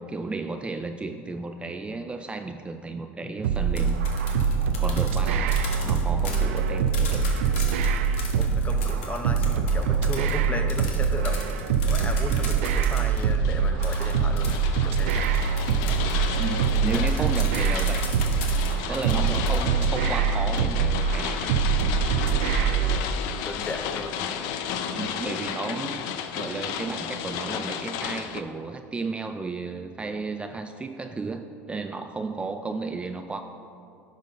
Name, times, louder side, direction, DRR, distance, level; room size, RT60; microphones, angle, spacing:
voice 1, 0.0-4.1 4.8-7.3 16.4-18.1 18.9-21.5 24.9-26.0 26.3-33.4, right 3 dB, 15° right, 7 dB, 0.3 m, -33 dB
sound 1, 3.4-23.0, right 6 dB, 85° right, 0.4 m, -24 dB
sound 2, 3.6-13.2 13.8-19.6, left 5 dB, 85° left, 1.2 m, -39 dB
voice 2, 8.4-11.6 11.9-15.5 16.9-17.1 19.3-19.8 22.7-24.3, left 2 dB, 20° left, 6 dB, 0.8 m, -36 dB
sound 3, 13.2-28.4, left 8 dB, 65° left, 0.5 m, -33 dB
10.0 x 3.9 x 5.4 m, 2.6 s
hypercardioid pair, 90°, 7 cm